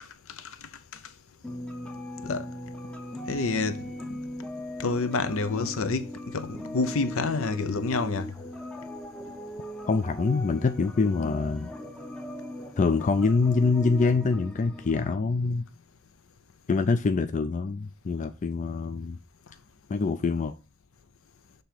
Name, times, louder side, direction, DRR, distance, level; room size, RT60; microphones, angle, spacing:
sound 1, 1.4-15.2, equal, 5° left, 0.7 m, -39 dB
voice 1, 3.3-3.8 4.1-4.2 4.8-8.3, left 3 dB, 65° left, 0.7 m, -28 dB
voice 2, 9.9-11.7 12.8-15.6 16.7-19.2 19.9-20.5, left 4 dB, 35° left, 0.4 m, -25 dB
6.7 x 3.5 x 5.7 m
head